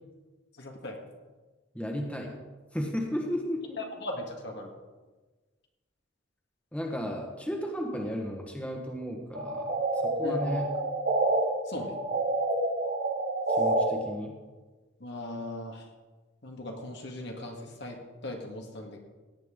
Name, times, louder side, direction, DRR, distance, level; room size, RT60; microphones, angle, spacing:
voice 1, 0.6-1.0 3.8-4.7 10.2-10.6 11.7-12.0 15.0-15.8 16.4-18.0 18.2-19.0, left 1 dB, 65° left, 1 dB, 1.8 m, -38 dB
voice 2, 1.7-2.3 2.7-3.8 6.7-9.8 10.0-10.7 13.6-14.3, equal, 5° left, 1 dB, 1.3 m, -34 dB
sound 1, 9.3-11.4 11.8-13.8, right 2 dB, 55° right, 1.7 m, -28 dB
17.0 x 8.8 x 3.7 m, 1.3 s
head